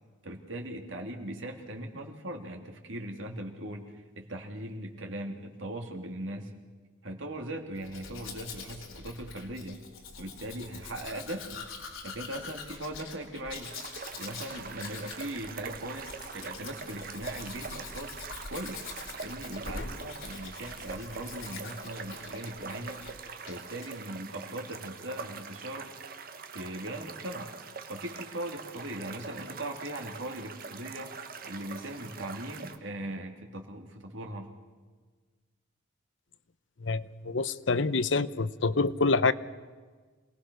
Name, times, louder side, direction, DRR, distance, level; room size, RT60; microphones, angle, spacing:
voice 1, 0.2-6.5 7.0-9.8 10.2-11.6 12.0-13.7 14.2-18.1 18.5-18.9 19.2-23.0 23.4-25.9 26.5-27.5 27.9-31.1 31.4-34.5, right 1 dB, 80° right, 3 dB, 3.1 m, -39 dB
Domestic sounds home sounds, 7.8-23.2 23.5-23.9, left 4 dB, 90° left, 3.6 m, -44 dB
sound 1, 13.6-32.8, right 5 dB, 50° right, 1.4 m, -43 dB
voice 2, 36.8-39.3, left 3 dB, 70° left, 15 dB, 0.8 m, -26 dB
27.0 x 19.0 x 6.4 m, 1.4 s
head